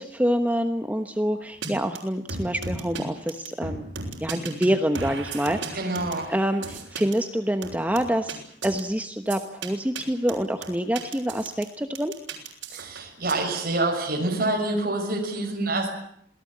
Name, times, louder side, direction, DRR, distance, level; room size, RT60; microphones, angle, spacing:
voice 1, 0.0-3.9 4.2-5.8 6.3-12.1, equal, 10° right, 6 dB, 1.1 m, -26 dB
sound 1, 1.6-1.7 2.0-2.1 2.3-3.0 3.3-4.7 5.0-7.1 7.6-8.3 8.6-8.8 9.3-9.7 10.0-10.1 10.3-11.6 12.0-13.3, right 4 dB, 85° right, 6.6 m, -35 dB
voice 2, 5.7-6.3 12.7-15.9, right 2 dB, 50° right, 0 dB, 6.2 m, -26 dB
27.5 x 18.5 x 8.7 m, 0.70 s
head